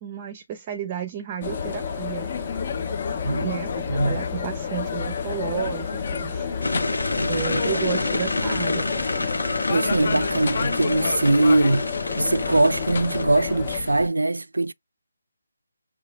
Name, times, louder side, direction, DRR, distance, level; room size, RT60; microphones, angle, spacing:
voice 1, 0.0-2.3 3.4-6.5 7.3-8.9, right 9 dB, 20° right, 0.5 m, -32 dB
sound 1, 1.4-14.1, left 5 dB, 45° left, 0.5 m, -31 dB
sound 2, 1.4-13.8, left 7 dB, 10° left, 1.2 m, -34 dB
sound 3, 6.6-13.2, left 2 dB, 85° left, 0.9 m, -28 dB
voice 2, 6.7-7.3 9.7-11.9 12.2-14.7, right 2 dB, 80° right, 0.3 m, -22 dB
4.8 x 2.3 x 3.3 m
figure-of-eight pair, 155°, 0 cm